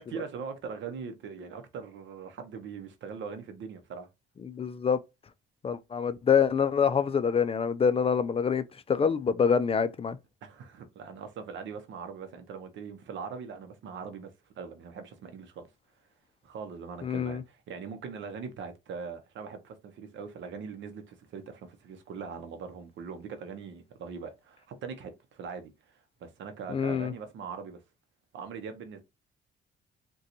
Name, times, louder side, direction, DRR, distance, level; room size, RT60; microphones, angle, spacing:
voice 1, 0.0-4.1 10.4-14.3 14.6-15.7 16.4-27.8 28.3-29.0, right 5 dB, 70° right, 0.7 m, -41 dB
voice 2, 4.4-5.0 5.6-10.2 17.0-17.4 26.7-27.1, left 6 dB, 30° left, 0.4 m, -26 dB
3.7 x 2.3 x 2.8 m
cardioid pair, 90°, 20 cm